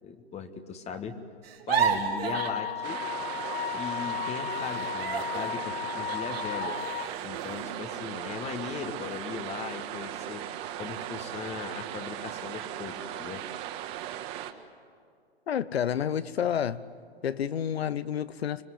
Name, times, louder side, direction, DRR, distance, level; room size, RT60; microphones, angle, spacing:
voice 1, 0.0-1.2 1.7-3.0 3.7-6.7 7.2-10.4 10.8-13.5, left 6 dB, 20° left, 1.5 m, -38 dB
sound 1, 1.4-3.9 4.2-8.6 9.1-9.2 9.6-10.1, right 7 dB, 70° right, 3.8 m, -34 dB
Wind instrument woodwind instrument, 2.3-7.1, left 10 dB, 40° left, 1.4 m, -34 dB
sound 2, 2.8-14.5, right 12 dB, 40° right, 1.8 m, -38 dB
voice 2, 15.5-16.8 17.2-18.6, left 9 dB, 75° left, 1.0 m, -29 dB
26.0 x 20.0 x 9.6 m
hypercardioid pair, 120°, 31 cm